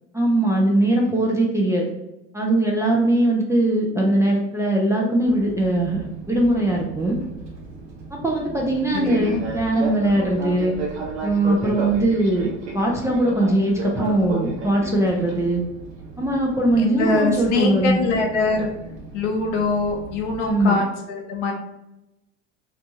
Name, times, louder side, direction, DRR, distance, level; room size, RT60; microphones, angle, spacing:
voice 1, 0.1-1.9 2.3-7.2 8.1-10.8 11.2-12.5 12.7-15.6 16.2-18.0 20.4-20.8, right 1 dB, 10° right, -2 dB, 0.4 m, -20 dB
Fixed-wing aircraft airplane, 5.3-20.6, right 3 dB, 65° right, 0.8 m, -35 dB
voice 2, 8.9-9.5 16.8-18.7 19.1-21.5, left 3 dB, 65° left, 1 dB, 0.8 m, -23 dB
2.6 x 2.3 x 2.7 m, 0.93 s
figure-of-eight pair, 70°, 37 cm